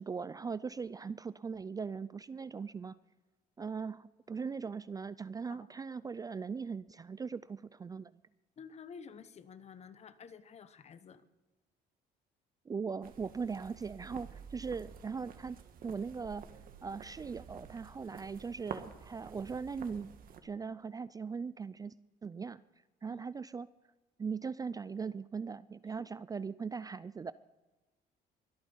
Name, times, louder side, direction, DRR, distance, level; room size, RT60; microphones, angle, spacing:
voice 1, 0.0-3.0 3.6-8.2 12.7-15.6 15.8-16.4 16.8-20.1 20.4-21.9 22.2-22.6 23.0-23.7 24.2-27.3, right 5 dB, 20° right, 16 dB, 0.4 m, -39 dB
voice 2, 8.6-11.2 23.1-23.2, left 6 dB, 40° left, 13 dB, 1.0 m, -51 dB
sound 1, 13.0-20.4, right 7 dB, 55° right, 1.5 m, -50 dB
23.5 x 8.7 x 5.5 m, 1.1 s
cardioid pair, 110°, 17 cm